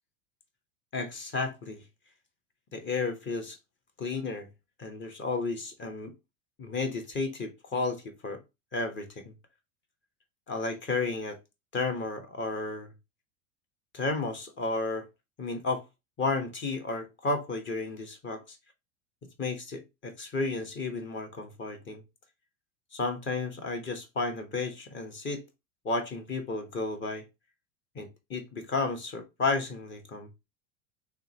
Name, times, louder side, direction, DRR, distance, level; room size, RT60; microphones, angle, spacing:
voice 1, 0.9-1.8 2.7-3.6 4.0-4.5 4.8-6.1 6.6-8.4 8.7-9.3 10.5-11.4 11.7-12.9 13.9-15.0 15.4-15.8 16.2-18.6 19.4-22.0 22.9-25.4 25.8-27.2 27.9-30.3, left 3 dB, 30° left, 1.1 m, -32 dB
3.7 x 3.1 x 2.8 m
supercardioid pair, 110°, 39 cm